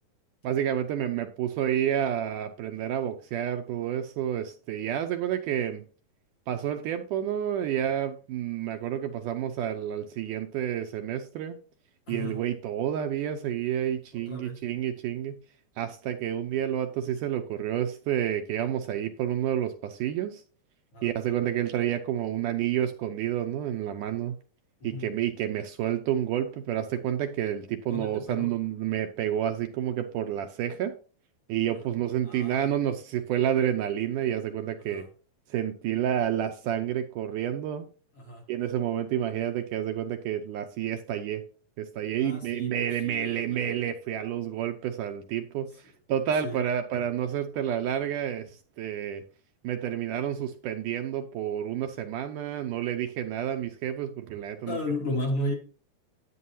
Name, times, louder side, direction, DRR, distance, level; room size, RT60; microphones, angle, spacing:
voice 1, 0.4-5.8 6.5-11.6 12.1-15.4 15.8-20.4 21.0-24.4 24.8-30.9 31.5-35.1 35.5-37.9 38.5-41.4 41.8-49.2 49.6-54.8, right 10 dB, 75° right, 2.0 m, -29 dB
voice 2, 12.1-12.4 14.1-14.6 20.9-21.1 24.8-25.1 27.9-28.5 31.7-31.9 32.2-32.7 34.8-35.1 38.2-38.5 42.2-43.6 45.6-45.7 46.4-46.6 54.7-55.5, left 1 dB, 45° left, 1.8 m, -34 dB
11.0 x 9.3 x 2.8 m
omnidirectional pair, 4.2 m